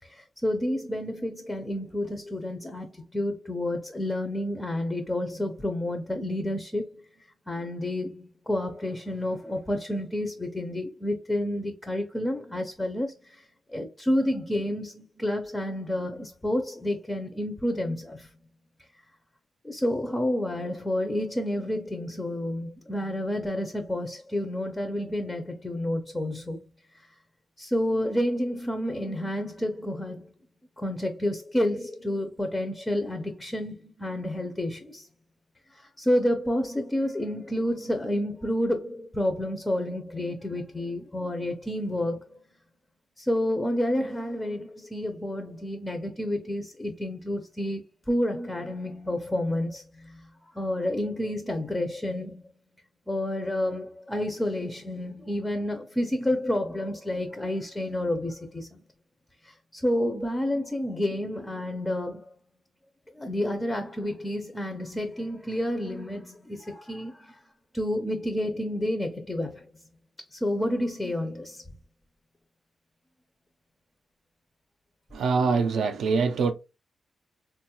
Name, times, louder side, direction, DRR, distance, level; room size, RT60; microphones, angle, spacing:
voice 1, 0.0-7.0 7.5-18.3 19.6-26.6 26.9-27.1 27.6-30.3 30.8-35.1 35.7-42.4 43.2-50.3 50.5-52.5 53.1-58.8 59.4-62.3 63.1-67.4 67.7-69.7 70.3-71.6, left 1 dB, 10° left, 0.4 m, -30 dB
voice 2, 75.1-76.5, right 5 dB, 80° right, 0.3 m, -24 dB
3.8 x 2.2 x 2.8 m
wide cardioid pair, 165°, 0 cm